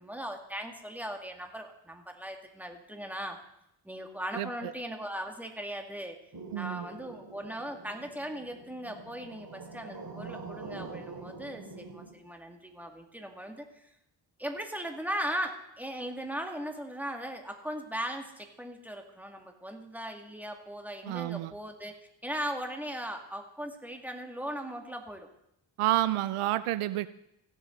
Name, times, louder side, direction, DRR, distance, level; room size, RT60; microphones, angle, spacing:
voice 1, 0.0-3.4 3.8-6.2 6.5-13.9 14.4-21.9 22.2-25.3, equal, 5° right, 3 dB, 2.2 m, -38 dB
voice 2, 4.3-4.7 6.5-6.9 21.0-21.5 25.8-27.1, right 15 dB, 85° right, 15 dB, 0.6 m, -29 dB
sound 1, 6.3-12.1, right 3 dB, 45° right, 2.6 m, -45 dB
16.5 x 7.5 x 3.9 m, 0.79 s
supercardioid pair, 40°, 50 cm